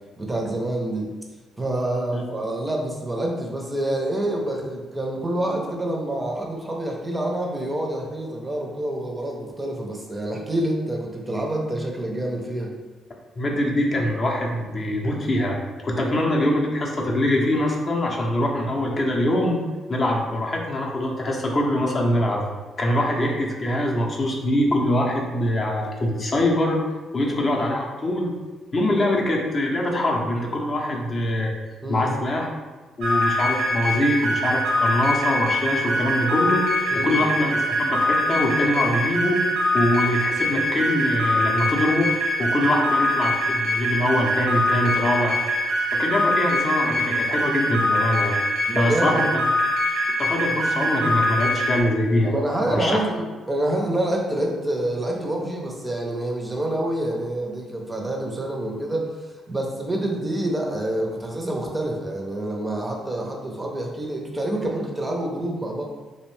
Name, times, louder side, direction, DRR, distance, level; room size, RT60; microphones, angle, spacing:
voice 1, 0.2-1.1 1.6-12.7 16.0-16.3 27.2-27.6 31.8-32.1 36.9-37.3 42.8-43.0 48.7-49.4 52.2-59.1 59.5-65.8, right 1 dB, 20° right, 0 dB, 0.5 m, -27 dB
voice 2, 13.4-19.6 19.9-22.5 22.8-26.8 27.1-28.3 28.7-31.5 31.9-32.5 33.0-36.7 36.9-39.4 39.7-45.3 45.9-48.3 48.7-49.4 50.2-52.4 52.7-53.0, left 1 dB, 40° left, -1 dB, 0.5 m, -23 dB
sound 1, 33.0-51.8, left 1 dB, 80° right, 0.7 m, -23 dB
2.6 x 2.1 x 3.1 m, 1.3 s
cardioid pair, 90°, 0 cm